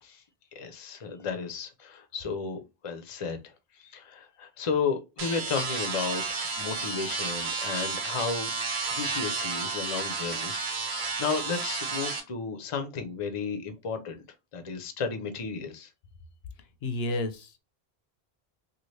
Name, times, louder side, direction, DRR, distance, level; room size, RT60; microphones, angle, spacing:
voice 1, 0.5-8.5 8.9-10.6 10.8-14.2 14.5-15.9, left 5 dB, 40° left, 0.6 m, -33 dB
sound 1, 5.2-12.2, right 4 dB, 85° right, 1.1 m, -32 dB
voice 2, 16.8-17.6, left 1 dB, 80° left, 0.8 m, -31 dB
2.8 x 2.4 x 3.1 m
omnidirectional pair, 1.1 m